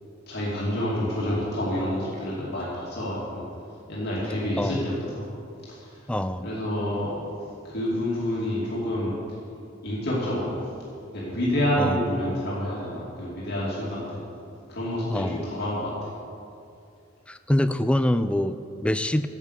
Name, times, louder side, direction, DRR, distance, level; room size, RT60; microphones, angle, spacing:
voice 1, 0.3-3.4 3.9-5.3 5.7-5.9 6.4-7.2 7.6-9.1 9.8-10.6 11.1-14.2 14.7-15.9, left 1 dB, 60° left, -7 dB, 2.6 m, -28 dB
voice 2, 4.6-4.9 6.1-6.5 11.8-12.0 15.1-15.5 17.3-19.3, left 1 dB, 5° left, 11 dB, 0.3 m, -25 dB
10.5 x 7.4 x 8.2 m, 2.6 s
head